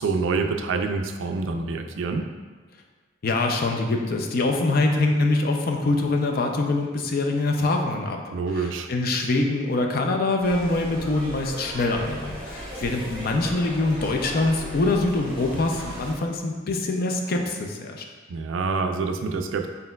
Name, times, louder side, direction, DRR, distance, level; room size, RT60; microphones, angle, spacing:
voice 1, 0.0-2.3 8.3-8.9 18.3-19.7, right 4 dB, 70° right, 5 dB, 0.3 m, -26 dB
voice 2, 3.2-8.2 8.6-18.0, left 2 dB, 50° left, 2 dB, 0.4 m, -24 dB
sound 1, 10.4-16.1, equal, 5° left, 1.3 m, -37 dB
4.3 x 3.8 x 2.2 m, 1.4 s
head